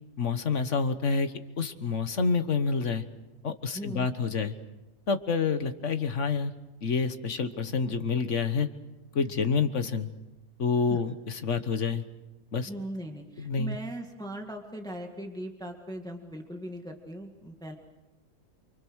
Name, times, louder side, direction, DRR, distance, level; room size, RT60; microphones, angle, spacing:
voice 1, 0.2-3.0 3.4-4.5 5.1-6.5 6.8-8.7 9.1-10.1 10.6-12.0 12.5-12.7 13.4-13.8, left 5 dB, 55° left, 10 dB, 1.6 m, -28 dB
voice 2, 3.7-4.1 10.9-11.0 12.7-17.8, right 1 dB, 5° left, 3 dB, 1.9 m, -39 dB
28.5 x 25.0 x 6.4 m, 0.98 s
omnidirectional pair, 1.6 m